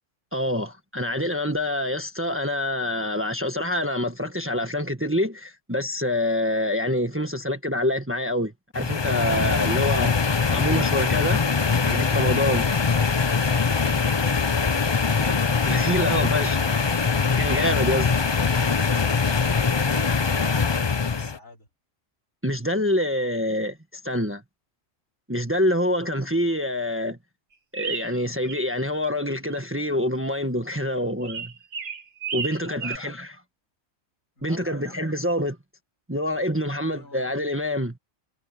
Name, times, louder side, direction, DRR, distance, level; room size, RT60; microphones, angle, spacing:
voice 1, 0.3-10.2 10.5-11.4 11.9-12.7 15.2-15.4 15.7-16.6 17.4-18.1 22.4-24.4 25.3-27.2 27.7-31.5 32.3-33.3 34.4-35.5 36.1-38.0, left 1 dB, 10° right, 1.4 m, -26 dB
sound 1, 8.7-21.4, left 5 dB, 35° left, 0.4 m, -22 dB
voice 2, 18.9-21.7 32.5-33.2 34.4-35.3 36.8-37.3, left 1 dB, 80° left, 5.1 m, -49 dB
sound 2, 27.7-28.6 28.9-29.6 31.2-33.0, right 6 dB, 60° right, 1.5 m, -33 dB
omnidirectional pair, 1.4 m